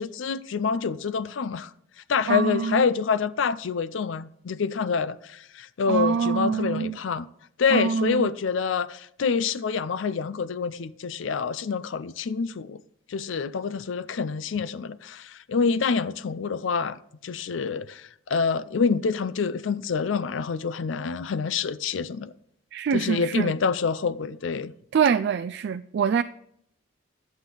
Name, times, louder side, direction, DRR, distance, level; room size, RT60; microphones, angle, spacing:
voice 1, 0.0-1.7 2.1-7.3 7.6-12.8 13.1-22.3 22.9-24.7, left 5 dB, 75° left, 0.5 m, -27 dB
voice 2, 2.3-2.9 5.9-7.0 7.7-8.3 22.7-23.5 24.9-26.2, right 6 dB, 60° right, 0.3 m, -24 dB
11.5 x 8.5 x 3.8 m
head